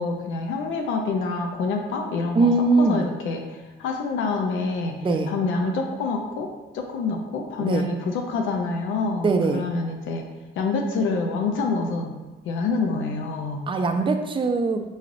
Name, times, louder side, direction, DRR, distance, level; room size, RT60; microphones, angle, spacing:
voice 1, 0.0-2.5 2.8-6.5 6.7-10.3 10.6-12.2 12.4-13.7, left 4 dB, 80° left, 2 dB, 0.5 m, -27 dB
voice 2, 2.3-3.1 5.0-5.3 7.6-7.9 9.2-9.7 13.7-14.9, right 3 dB, 25° right, 6 dB, 0.4 m, -21 dB
4.0 x 3.1 x 2.5 m, 1.1 s
cardioid pair, 90°, 20 cm